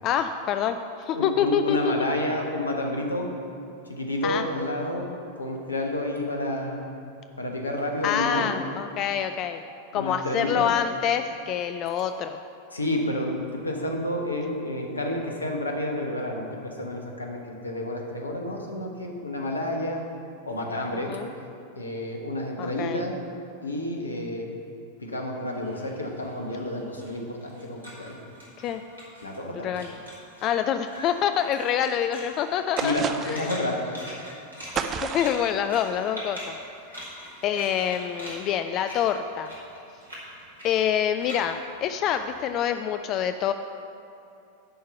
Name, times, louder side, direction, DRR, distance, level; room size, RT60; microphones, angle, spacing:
voice 1, 0.0-1.9 4.2-4.5 8.0-9.6 9.9-12.4 21.1-21.3 22.6-23.0 28.6-28.8 29.5-29.9 30.4-32.9 33.2-33.5 35.0-36.6 36.9-39.5 40.6-43.5, left 9 dB, 35° left, 8 dB, 0.3 m, -26 dB
voice 2, 1.1-3.3 3.9-5.1 5.4-6.8 7.4-8.5 9.9-10.6 12.7-13.4 13.6-20.0 20.4-21.2 21.8-23.2 23.6-24.5 25.0-28.2 29.2-29.7 30.9-31.1 32.8-34.4, left 1 dB, 80° left, 2 dB, 1.2 m, -30 dB
sound 1, 25.5-29.5 29.7-30.5 30.8-42.7, equal, 75° right, 2.5 m, -43 dB
sound 2, 32.8-33.6 34.7-35.5, right 6 dB, 30° right, 0.5 m, -30 dB
10.5 x 4.6 x 6.9 m, 2.7 s
figure-of-eight pair, 90°, 0 cm